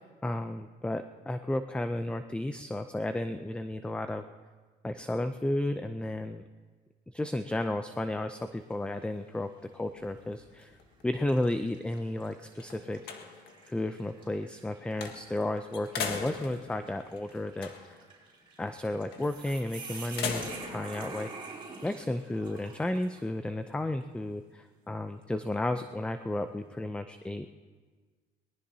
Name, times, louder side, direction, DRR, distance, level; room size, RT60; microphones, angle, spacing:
voice 1, 0.2-4.2 4.8-6.4 7.1-10.8 11.0-13.3 13.6-18.0 18.6-21.3 21.8-27.5, left 1 dB, 5° left, 9 dB, 0.5 m, -33 dB
sound 1, 8.4-8.8 9.3-9.5 10.4-10.7 11.3-23.3, right 4 dB, 30° right, 4.7 m, -48 dB
sound 2, 10.0-11.5 12.0-12.1 12.5-13.6 15.0-15.4 15.7-18.1 19.1-19.4 19.9-20.8, left 6 dB, 75° left, 1.7 m, -39 dB
23.0 x 19.0 x 2.8 m, 1.4 s
cardioid pair, 110°, 17 cm